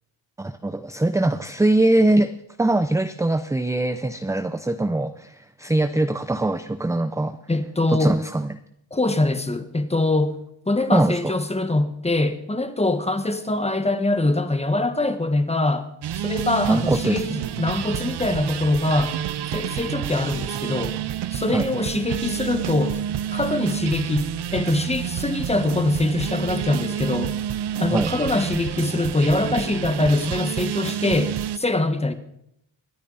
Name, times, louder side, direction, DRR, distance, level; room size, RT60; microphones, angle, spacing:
voice 1, 0.4-2.3 2.6-7.4 7.9-8.5 10.9-11.1 16.7-17.4 21.5-21.6 27.9-28.1, right 2 dB, 5° right, 0.5 m, -22 dB
voice 2, 7.5-8.2 8.9-10.4 10.7-15.9 16.1-19.2 19.5-21.0 21.3-23.0 23.3-27.4 27.8-32.1, left 2 dB, 15° left, 1.3 m, -23 dB
sound 1, 16.0-31.6, right 10 dB, 60° right, 0.7 m, -29 dB
24.5 x 9.1 x 4.0 m
cardioid pair, 95°, 46 cm